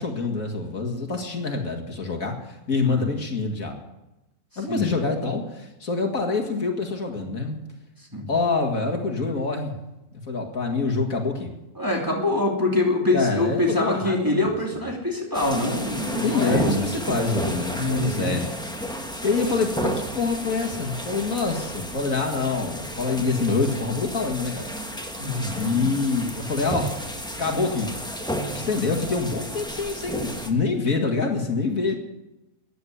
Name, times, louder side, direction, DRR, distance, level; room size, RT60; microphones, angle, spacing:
voice 1, 0.0-3.8 4.6-7.6 8.3-9.8 10.3-11.6 13.1-14.5 16.2-18.5 19.2-24.7 25.6-27.0 27.4-27.9 28.5-31.9, left 4 dB, 60° left, 3 dB, 2.5 m, -26 dB
voice 2, 11.8-16.8 17.7-18.4 25.2-25.8, left 2 dB, 15° right, -1 dB, 2.9 m, -24 dB
sound 1, 15.3-30.5, equal, 5° left, 1.5 m, -32 dB
14.5 x 10.0 x 9.6 m, 0.98 s
omnidirectional pair, 1.6 m